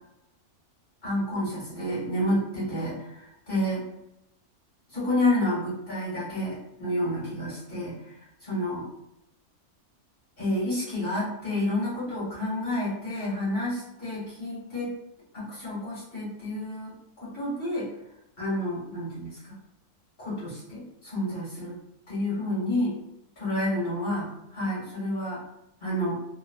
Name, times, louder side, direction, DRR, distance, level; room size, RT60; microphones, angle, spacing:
voice 1, 1.0-3.8 4.9-8.1 8.4-8.8 10.4-14.9 15.3-17.9 18.4-19.5 20.2-21.8 22.1-23.0 23.4-25.4 25.8-26.1, left 1 dB, 40° left, -8 dB, 1.9 m, -29 dB
3.3 x 2.5 x 2.3 m, 0.84 s
omnidirectional pair, 1.5 m